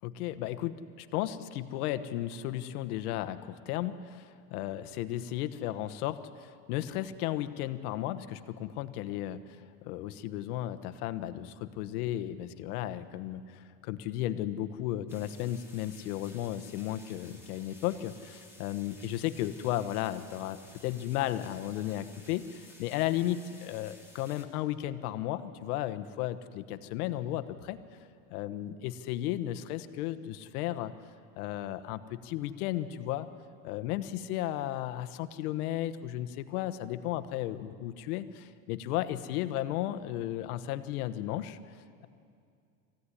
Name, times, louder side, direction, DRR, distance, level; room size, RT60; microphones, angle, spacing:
voice 1, 0.0-9.6 9.8-27.8 28.3-30.9 31.4-33.3 33.6-41.6, left 13 dB, 90° left, 10 dB, 1.2 m, -34 dB
sound 1, 15.1-24.5, left 1 dB, 5° right, 2.9 m, -55 dB
22.5 x 16.0 x 9.9 m, 2.4 s
cardioid pair, 140°, 43 cm